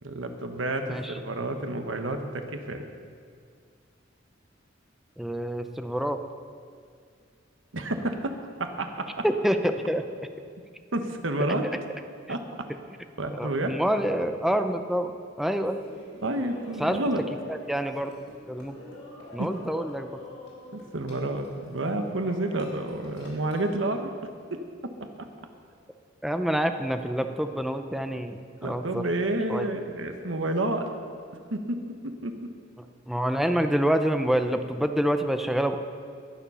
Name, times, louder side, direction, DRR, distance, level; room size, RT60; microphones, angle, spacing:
voice 1, 0.0-2.8 7.7-8.3 8.6-9.2 10.9-11.7 12.3-12.7 13.2-13.8 16.2-17.2 19.4-19.6 20.7-24.1 24.5-25.3 28.6-30.9 31.5-32.5, right 1 dB, 85° right, 6 dB, 1.2 m, -30 dB
voice 2, 5.2-6.2 9.2-10.0 13.4-15.1 15.4-15.8 16.8-17.0 17.5-18.1 18.5-18.7 19.3-20.1 26.2-29.0 29.5-29.7 33.1-35.8, equal, ahead, 7 dB, 0.6 m, -27 dB
Laughter, 15.6-23.7, left 2 dB, 80° left, 4.5 m, -47 dB
20.5 x 7.4 x 5.6 m, 2.2 s
head